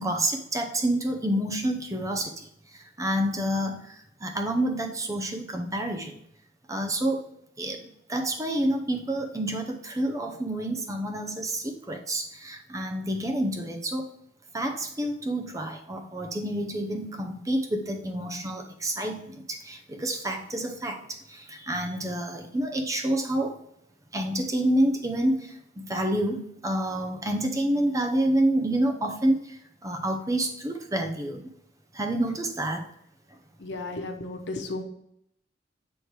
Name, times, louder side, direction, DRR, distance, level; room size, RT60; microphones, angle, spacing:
voice 1, 0.0-2.5 2.7-6.2 6.7-7.2 7.6-14.1 14.5-23.6 24.1-29.6 29.8-31.5 31.9-32.9, right 1 dB, 20° right, 4 dB, 0.8 m, -28 dB
voice 2, 33.6-34.8, left 2 dB, 85° left, 5 dB, 1.0 m, -34 dB
8.3 x 3.2 x 4.6 m, 0.74 s
head